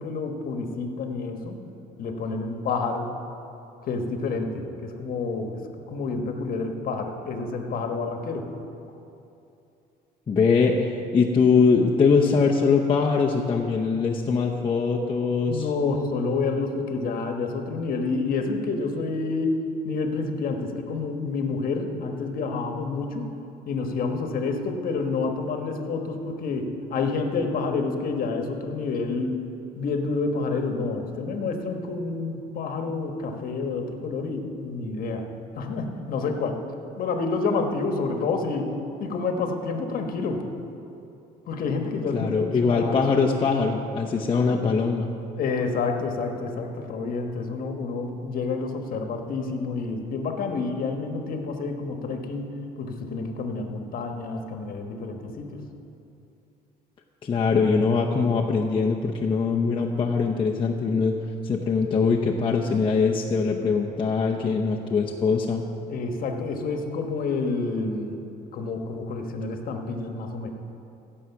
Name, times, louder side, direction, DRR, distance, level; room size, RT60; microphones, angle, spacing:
voice 1, 0.0-1.6 2.0-3.1 3.9-5.6 5.9-8.5 15.5-19.6 19.8-23.3 23.6-29.4 29.8-35.3 35.6-36.6 37.0-38.7 39.0-40.4 41.5-43.1 45.4-52.5 52.8-55.6 65.9-68.3 68.5-70.5, left 4 dB, 60° left, 4 dB, 1.2 m, -28 dB
voice 2, 10.3-15.7 42.1-45.1 57.2-61.2 61.4-65.6, left 5 dB, 30° left, -1 dB, 0.8 m, -22 dB
16.0 x 6.4 x 5.8 m, 2.7 s
cardioid pair, 110°, 17 cm